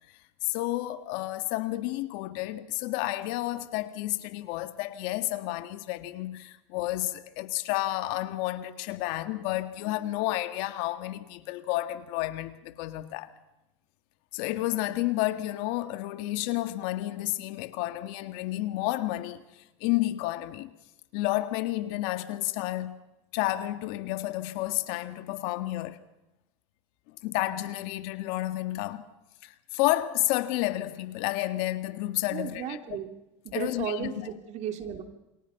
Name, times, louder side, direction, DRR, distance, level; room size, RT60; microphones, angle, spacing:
voice 1, 0.4-13.3 14.3-19.4 19.8-20.7 21.1-23.0 23.3-26.0 27.2-29.1 29.4-32.8 33.5-34.3, left 16 dB, 60° left, 1.8 m, -31 dB
voice 2, 32.3-33.1 33.4-35.0, right 8 dB, 45° right, 3.0 m, -34 dB
28.0 x 23.5 x 5.9 m
supercardioid pair, 125°, 16 cm